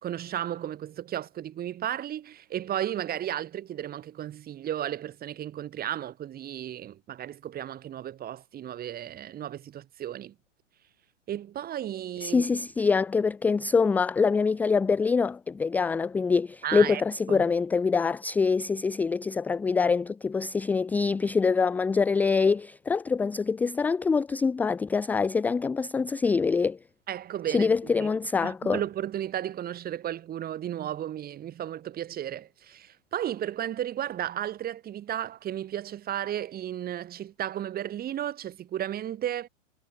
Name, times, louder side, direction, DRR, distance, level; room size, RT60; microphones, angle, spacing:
voice 1, 0.0-10.3 11.3-12.5 16.6-17.0 17.3-17.5 27.1-28.1 28.4-39.5, right 11 dB, 25° right, 5.4 m, -34 dB
voice 2, 12.2-26.8 27.5-28.8, left 5 dB, 5° left, 0.4 m, -25 dB
figure-of-eight pair, 110°, 38 cm